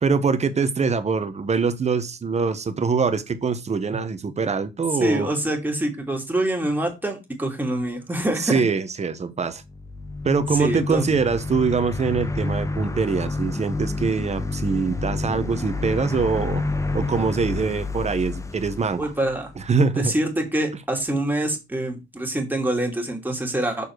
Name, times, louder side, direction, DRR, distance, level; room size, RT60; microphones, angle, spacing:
voice 1, 0.0-5.3 8.4-9.6 10.2-16.6 16.9-19.1 19.6-20.1, right 5 dB, 35° right, 1.1 m, -23 dB
voice 2, 5.0-8.6 10.6-11.1 19.0-19.5 20.0-23.9, right 1 dB, 10° right, 2.5 m, -25 dB
sound 1, 9.6-19.8, left 3 dB, 15° left, 0.8 m, -29 dB
6.9 x 4.4 x 4.6 m
cardioid pair, 90°, 20 cm